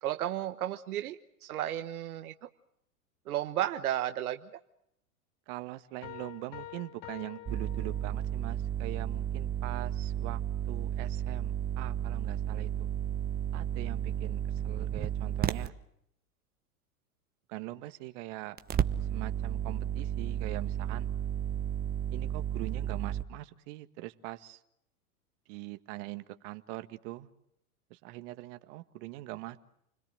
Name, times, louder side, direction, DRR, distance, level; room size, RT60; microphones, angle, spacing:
voice 1, 0.0-2.5 3.3-4.4, right 12 dB, 75° right, 8 dB, 1.2 m, -33 dB
voice 2, 5.5-10.4 10.7-12.9 13.5-15.7 17.5-18.6 19.1-21.1 22.1-24.6 25.5-27.3 27.9-29.6, right 18 dB, 55° right, 10 dB, 1.7 m, -42 dB
sound 1, 6.0-8.5, left 14 dB, 45° left, 1.9 m, -47 dB
sound 2, 7.5-15.7 18.6-23.2, right 10 dB, 20° right, 1.2 m, -33 dB
29.5 x 21.5 x 7.8 m, 0.76 s
hypercardioid pair, 105°, 44 cm